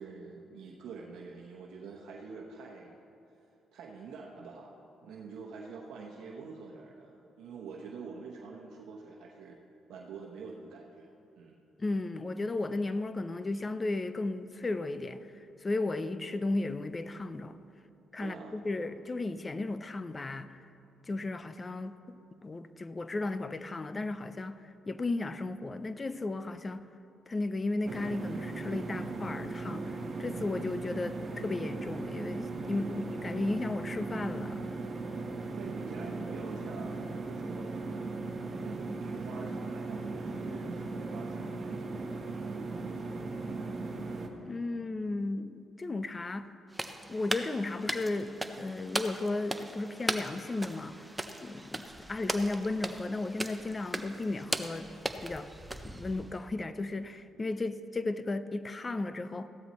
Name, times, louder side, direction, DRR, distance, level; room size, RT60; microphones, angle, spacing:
voice 1, 0.0-3.0 3.7-9.6 9.9-11.5 18.2-18.6 32.7-33.1 35.6-37.9 38.1-43.2, right 4 dB, 80° right, 1.0 m, -46 dB
voice 2, 11.8-15.2 15.6-17.6 18.1-20.6 21.1-22.2 22.4-24.6 24.9-26.9 27.3-34.7 44.4-46.5 47.1-51.0 51.4-54.9 55.2-55.5 55.8-59.5, left 2 dB, 25° left, 0.5 m, -34 dB
sound 1, 27.8-44.3, right 3 dB, 40° right, 1.2 m, -38 dB
Pasos Suave A, 46.7-56.4, right 1 dB, 10° right, 0.7 m, -38 dB
15.5 x 12.5 x 3.1 m
cardioid pair, 90°, 0 cm